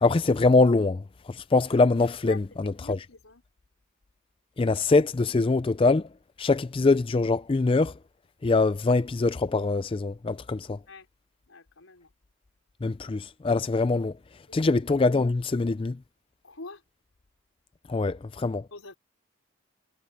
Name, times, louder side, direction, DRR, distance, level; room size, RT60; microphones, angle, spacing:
voice 1, 0.0-3.0 4.6-6.1 6.4-7.9 8.4-10.8 12.8-14.1 14.5-16.0 17.9-18.7, left 3 dB, 25° left, 0.4 m, -23 dB
voice 2, 2.3-3.4 10.8-11.1 11.5-12.1 14.5-14.7 16.4-16.8 18.7-18.9, left 3 dB, 85° left, 4.8 m, -45 dB
head